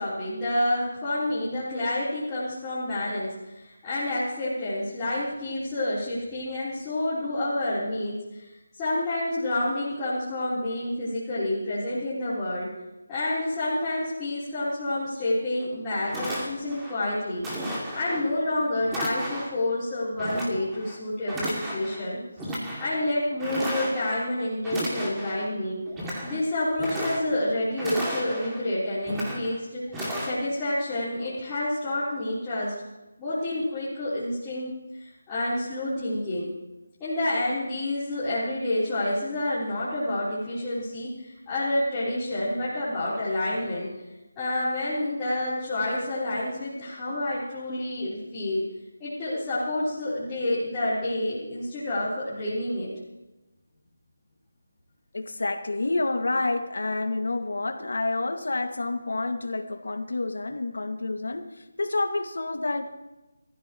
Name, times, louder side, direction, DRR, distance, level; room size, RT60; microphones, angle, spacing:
voice 1, 0.0-8.5 8.8-12.7 13.1-22.2 22.5-25.8 26.2-29.8 30.2-32.7 33.2-34.7 34.9-36.5 37.0-43.9 44.4-48.7 49.0-52.9, left 1 dB, 15° left, -12 dB, 3.7 m, -28 dB
sound 1, 15.6-15.7 16.1-16.9 17.4-18.2 18.9-19.6 20.2-21.0 21.3-22.0 22.4-22.9 23.4-24.2 24.6-25.5 25.9-26.4 26.7-27.5 27.8-28.6 29.0-29.6 29.9-30.3, equal, 10° right, 2.4 m, -33 dB
voice 2, 55.1-62.9, left 2 dB, 75° left, 5 dB, 1.9 m, -29 dB
23.5 x 15.0 x 3.0 m, 1.0 s
figure-of-eight pair, 170°, 0 cm